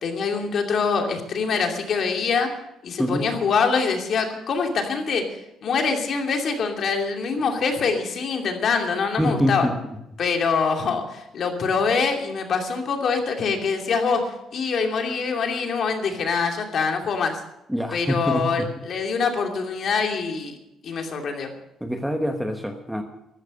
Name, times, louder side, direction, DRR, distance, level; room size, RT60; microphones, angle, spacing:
voice 1, 0.0-2.5 2.8-9.7 10.2-17.4 17.9-20.6 20.8-21.5, left 5 dB, 45° left, 3 dB, 2.7 m, -24 dB
voice 2, 3.0-3.3 9.2-9.7 17.7-18.7 21.8-23.0, equal, ahead, 5 dB, 1.1 m, -25 dB
14.0 x 13.5 x 6.6 m, 0.84 s
cardioid pair, 160°, 0 cm